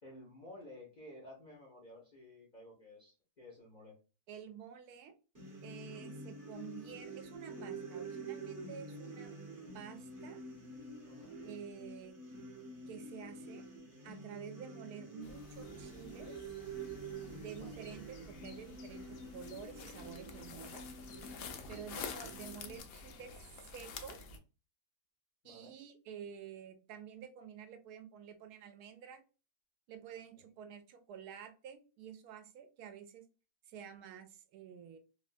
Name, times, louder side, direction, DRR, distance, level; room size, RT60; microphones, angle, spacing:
voice 1, 0.0-4.0 11.0-11.4 17.5-17.9 21.6-21.8 25.4-25.7 30.4-30.5, left 1 dB, 45° left, -1 dB, 0.5 m, -54 dB
voice 2, 4.3-5.1 5.6-9.3 9.7-10.4 11.4-12.2 12.9-13.6 14.0-16.4 17.4-20.8 21.7-24.3 25.4-29.2 29.9-33.3 33.7-35.0, right 8 dB, 75° right, 8 dB, 1.1 m, -50 dB
sound 1, 5.3-22.8, right 3 dB, 20° right, 0.5 m, -48 dB
sound 2, 15.2-24.4, left 5 dB, 70° left, 0.9 m, -49 dB
3.3 x 2.2 x 2.5 m, 0.33 s
omnidirectional pair, 1.7 m